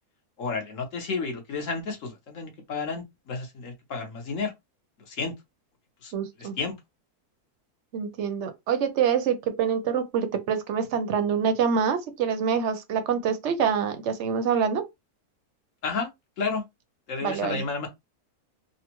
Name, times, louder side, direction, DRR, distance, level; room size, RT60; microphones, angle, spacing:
voice 1, 0.4-4.5 5.1-5.3 6.0-6.1 6.4-6.7 15.8-16.1 16.4-16.6 17.1-17.9, left 4 dB, 55° left, 1.4 m, -31 dB
voice 2, 6.1-6.5 7.9-14.8 17.2-17.6, right 7 dB, 60° right, 0.8 m, -26 dB
4.0 x 2.2 x 2.9 m
omnidirectional pair, 1.6 m